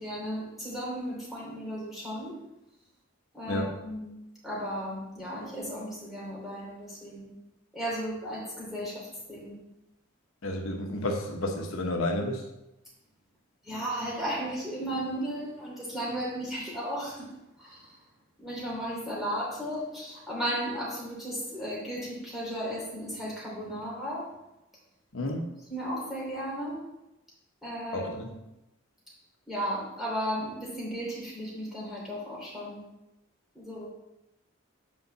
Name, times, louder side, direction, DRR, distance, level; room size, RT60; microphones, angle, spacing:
voice 1, 0.0-2.4 3.3-4.1 4.4-7.3 7.7-9.6 13.6-17.3 17.6-17.9 18.4-24.3 25.7-26.8 27.6-28.2 29.5-32.8 33.5-33.9, equal, ahead, -6 dB, 3.0 m, -35 dB
voice 2, 10.4-12.4 25.1-25.5 27.9-28.3, left 1 dB, 80° left, 3 dB, 1.0 m, -31 dB
5.5 x 5.4 x 6.7 m, 0.92 s
head